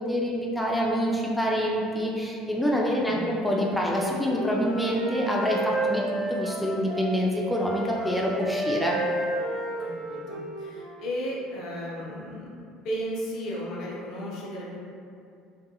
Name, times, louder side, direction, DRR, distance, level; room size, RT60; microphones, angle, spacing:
voice 1, 0.0-9.0, equal, ahead, -4 dB, 0.4 m, -26 dB
voice 2, 3.0-3.3 9.8-12.5 12.8-14.8, equal, 55° left, -4 dB, 0.6 m, -34 dB
Wind instrument woodwind instrument, 3.5-7.1 7.5-11.1, right 2 dB, 45° right, 1.1 m, -32 dB
2.6 x 2.5 x 2.3 m, 2.4 s
figure-of-eight pair, 65°, 0 cm